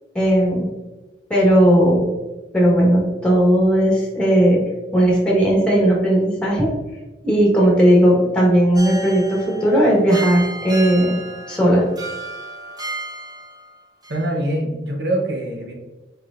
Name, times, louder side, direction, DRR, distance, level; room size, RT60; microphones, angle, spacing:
voice 1, 0.1-0.7 1.3-2.1 2.5-4.6 4.9-6.7 7.2-11.2 11.5-11.8, right 1 dB, 5° left, -4 dB, 1.4 m, -16 dB
sound 1, 8.7-13.8 14.0-14.2, right 2 dB, 20° right, 0.9 m, -33 dB
voice 2, 14.1-15.7, right 1 dB, 70° right, 0 dB, 0.9 m, -24 dB
4.7 x 4.4 x 2.5 m, 1.1 s
head